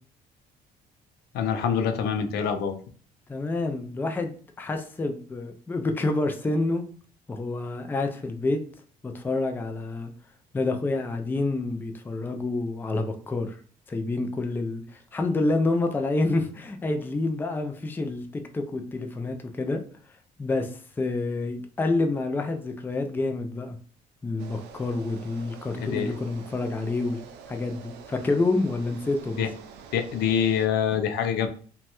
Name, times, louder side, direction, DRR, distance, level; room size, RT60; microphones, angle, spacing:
voice 1, 1.3-2.7 25.8-26.2 29.4-29.5 29.9-31.5, left 8 dB, 75° left, 8 dB, 0.5 m, -25 dB
voice 2, 3.3-6.8 7.3-8.6 9.0-10.1 10.5-13.6 13.9-19.8 20.4-23.8 24.2-29.4, left 2 dB, 10° left, 5 dB, 0.3 m, -28 dB
sound 1, 24.4-30.7, right 6 dB, 90° right, 0.4 m, -46 dB
3.0 x 2.2 x 2.9 m, 0.44 s
cardioid pair, 110°, 17 cm